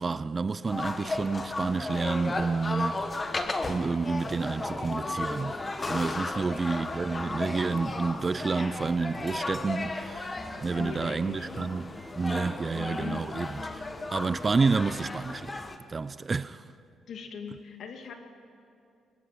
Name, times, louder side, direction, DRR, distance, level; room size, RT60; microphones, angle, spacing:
voice 1, 0.0-3.4 3.7-5.6 5.9-10.4 10.6-15.6 15.9-16.6, right 4 dB, 30° right, 0.5 m, -29 dB
sound 1, 0.6-15.8, left 2 dB, 25° left, 1.3 m, -35 dB
sound 2, 4.1-15.2, equal, ahead, 2.8 m, -47 dB
voice 2, 6.1-6.7 10.7-11.7 12.7-13.2 17.1-18.2, left 5 dB, 65° left, 2.3 m, -41 dB
22.0 x 20.5 x 6.0 m
cardioid pair, 90°, 0 cm